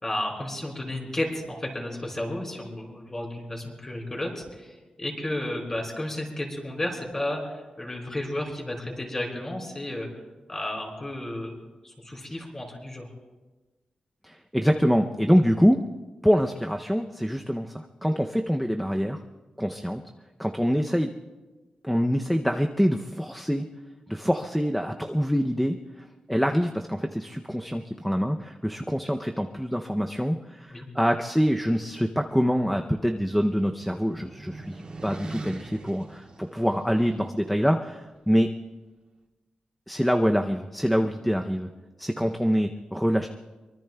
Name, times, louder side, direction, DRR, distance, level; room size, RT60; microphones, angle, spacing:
voice 1, 0.0-10.1 10.5-11.5 11.8-13.1 30.7-30.9, left 1 dB, 20° left, -1 dB, 4.1 m, -32 dB
voice 2, 14.2-15.8 16.2-19.2 19.6-20.0 20.4-21.1 21.8-23.6 24.1-25.8 26.3-38.5 39.9-41.7 42.0-43.3, equal, ahead, 3 dB, 0.5 m, -25 dB
sound 1, 32.5-37.2, right 2 dB, 45° right, 2.3 m, -43 dB
24.0 x 23.5 x 2.2 m, 1.2 s
wide cardioid pair, 165°, 2 cm